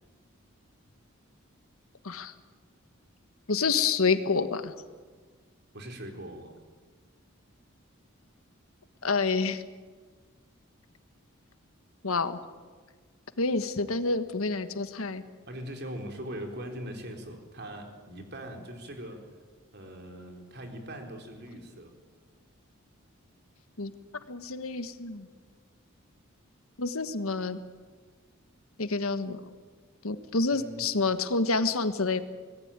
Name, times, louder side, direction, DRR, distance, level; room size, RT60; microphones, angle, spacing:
voice 1, 3.5-4.7 9.0-9.6 12.0-12.4 13.4-15.2 23.8-23.9 24.3-25.3 26.8-27.6 28.8-29.4 30.0-32.2, left 4 dB, 85° left, 10 dB, 1.5 m, -28 dB
voice 2, 5.7-6.5 15.5-19.3 19.7-21.9 30.5-30.8, right 1 dB, 50° right, 3 dB, 4.0 m, -41 dB
25.0 x 19.0 x 9.0 m, 1.5 s
head